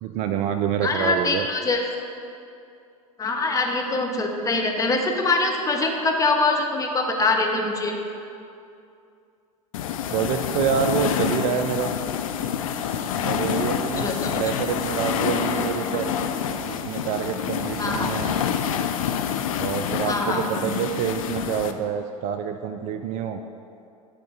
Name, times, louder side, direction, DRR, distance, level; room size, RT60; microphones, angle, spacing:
voice 1, 0.0-1.5 10.1-12.0 13.2-16.1 16.7-18.3 19.5-23.4, right 8 dB, 40° right, 7 dB, 0.4 m, -27 dB
voice 2, 0.8-1.8 3.2-7.9 14.0-14.3 15.9-16.0 17.8-18.1 20.1-20.7, left 3 dB, 15° left, 2 dB, 0.8 m, -24 dB
sound 1, 9.7-21.7, left 8 dB, 65° left, 0.5 m, -27 dB
sound 2, 12.8-18.6, right 4 dB, 55° right, 1.4 m, -41 dB
9.2 x 3.7 x 5.3 m, 2.6 s
figure-of-eight pair, 80°, 19 cm